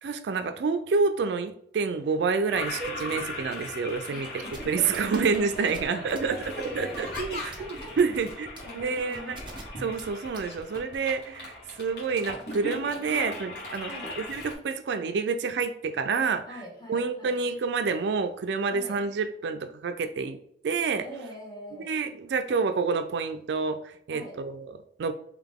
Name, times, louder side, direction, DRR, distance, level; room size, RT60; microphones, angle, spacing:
voice 1, 0.0-9.4 9.8-13.9 14.2-16.4 16.9-20.4 20.6-21.0 21.8-25.1, right 5 dB, 75° right, 9 dB, 0.3 m, -28 dB
Toilet flush, 2.5-14.5, left 2 dB, 65° left, 1.6 m, -39 dB
voice 2, 4.1-7.0 7.6-7.9 8.6-9.6 13.9-14.1 16.5-17.4 18.7-19.0 21.0-21.9 24.1-24.4, equal, 25° left, -3 dB, 1.3 m, -43 dB
sound 1, 4.5-11.0, right 2 dB, 25° right, 0.6 m, -44 dB
3.9 x 2.9 x 3.5 m, 0.69 s
head